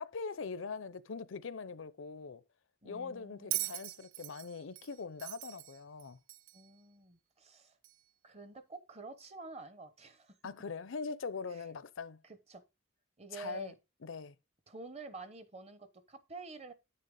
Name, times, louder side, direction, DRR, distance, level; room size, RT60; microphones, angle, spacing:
voice 1, 0.0-2.4 2.8-6.2 10.4-12.2 13.3-13.7 14.0-14.3, left 4 dB, 75° left, 0.6 m, -42 dB
voice 2, 2.8-3.7 6.5-7.8 8.2-10.4 11.5-11.6 12.2-12.6 13.2-13.8 14.7-16.7, right 3 dB, 30° right, 1.0 m, -49 dB
Bell, 3.5-6.7 7.8-8.0, right 16 dB, 90° right, 0.4 m, -40 dB
9.5 x 6.7 x 3.8 m
head